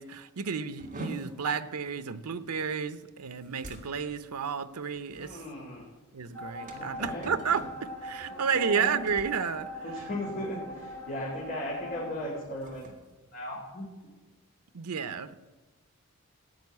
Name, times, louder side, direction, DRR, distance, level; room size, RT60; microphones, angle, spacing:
voice 1, 0.0-5.4 6.1-9.7 14.7-15.3, right 6 dB, 85° right, 12 dB, 0.7 m, -31 dB
sound 1, 0.8-10.4 10.7-11.1 11.5-11.7 12.3-14.2, right 1 dB, 35° right, 2.0 m, -47 dB
voice 2, 5.1-5.9 6.7-7.4 8.3-9.0 9.8-12.9 13.3-13.9, left 1 dB, 45° left, -6 dB, 3.2 m, -37 dB
sound 2, 6.3-12.3, equal, 5° left, 4.8 m, -41 dB
15.5 x 6.3 x 9.5 m, 1.2 s
head